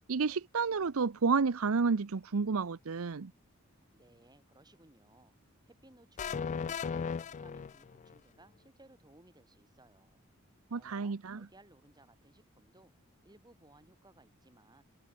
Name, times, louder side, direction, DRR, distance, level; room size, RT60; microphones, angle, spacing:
voice 1, 0.1-3.3 10.7-11.4, right 5 dB, 75° right, 0.7 m, -30 dB
voice 2, 3.9-5.3 5.7-10.2 10.7-12.9 13.2-14.8, right 1 dB, 20° right, 7.6 m, -62 dB
sound 1, 6.2-8.2, left 6 dB, 35° left, 0.3 m, -36 dB
head